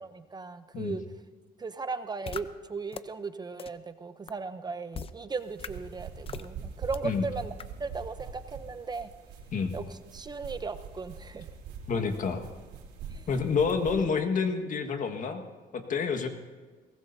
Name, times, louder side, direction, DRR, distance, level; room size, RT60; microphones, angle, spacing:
voice 1, 0.0-1.0 1.6-9.1 9.7-9.8 10.1-11.5 13.1-13.2, right 4 dB, 25° right, 10 dB, 0.7 m, -37 dB
sound 1, 2.3-2.4 2.9-3.0 3.6-3.7 4.3-4.4 4.9-5.1 5.6-5.7 6.3-6.5 6.9-7.0 7.6-7.7, left 7 dB, 35° left, 0.7 m, -38 dB
sound 2, 5.4-14.0, right 6 dB, 85° right, 3.5 m, -44 dB
voice 2, 11.9-12.4 13.3-15.4 15.7-16.3, left 5 dB, 50° left, 6 dB, 1.7 m, -28 dB
22.5 x 19.0 x 2.8 m, 1.4 s
cardioid pair, 110°, 17 cm